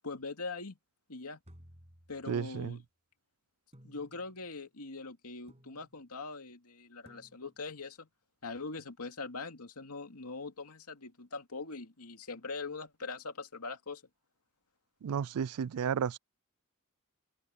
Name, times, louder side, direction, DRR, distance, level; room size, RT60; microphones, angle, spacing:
voice 1, 0.0-0.8 1.1-1.4 2.1-2.8 3.8-8.1 8.4-14.0, left 3 dB, 90° left, 2.5 m, -42 dB
sound 1, 1.4-2.7 3.7-4.5 5.5-6.1 7.1-7.7, equal, 30° right, 7.9 m, -59 dB
voice 2, 2.3-2.8 15.0-16.2, right 7 dB, 80° right, 0.4 m, -33 dB
head